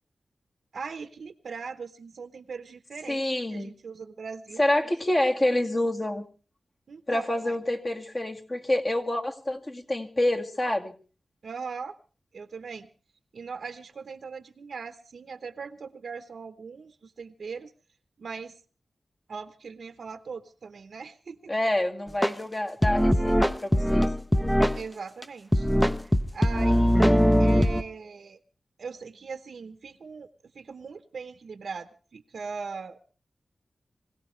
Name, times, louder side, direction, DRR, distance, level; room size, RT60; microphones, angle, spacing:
voice 1, 0.7-3.2 3.5-4.9 6.9-7.6 11.4-12.0 12.3-12.9 13.3-17.7 18.2-18.6 19.3-21.5 24.7-25.7 26.0-28.4 28.8-30.3 30.5-33.1, right 5 dB, 80° right, 9 dB, 0.9 m, -40 dB
voice 2, 3.1-3.7 4.6-6.3 7.1-10.9 21.5-24.1, left 1 dB, 30° left, 3 dB, 2.0 m, -27 dB
sound 1, 22.2-22.3 22.8-24.8 25.2-25.3 25.5-27.8, equal, 5° left, 0.7 m, -21 dB
25.0 x 17.0 x 3.3 m, 0.37 s
wide cardioid pair, 135°, 0 cm